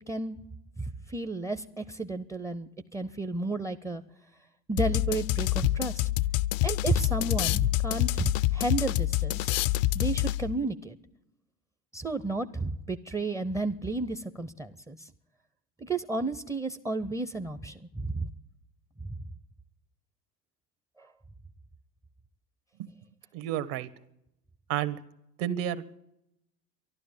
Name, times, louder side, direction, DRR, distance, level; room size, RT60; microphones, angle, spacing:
voice 1, 0.1-0.4 0.8-4.0 4.7-6.0 6.6-9.5 9.9-11.0 11.9-15.1 15.8-18.3 19.0-19.1 21.0-21.1, right 2 dB, 10° right, 9 dB, 0.5 m, -32 dB
sound 1, 4.8-10.6, left 16 dB, 55° left, 0.5 m, -27 dB
voice 2, 23.3-23.9 24.7-25.0 25.4-26.0, right 11 dB, 60° right, 13 dB, 1.3 m, -31 dB
12.5 x 12.0 x 8.9 m, 0.81 s
hypercardioid pair, 85°, 49 cm